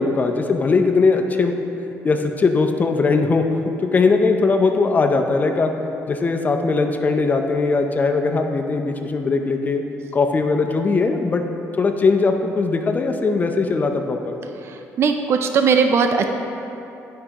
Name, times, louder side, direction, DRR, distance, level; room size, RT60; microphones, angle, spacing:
voice 1, 0.0-1.6 2.0-3.4 3.8-5.7 6.1-9.8 10.1-11.4 11.8-14.4, left 4 dB, 30° left, 4 dB, 0.5 m, -19 dB
voice 2, 14.6-16.3, right 5 dB, 50° right, 5 dB, 0.4 m, -19 dB
9.3 x 5.4 x 2.9 m, 2.9 s
cardioid pair, 105°, 6 cm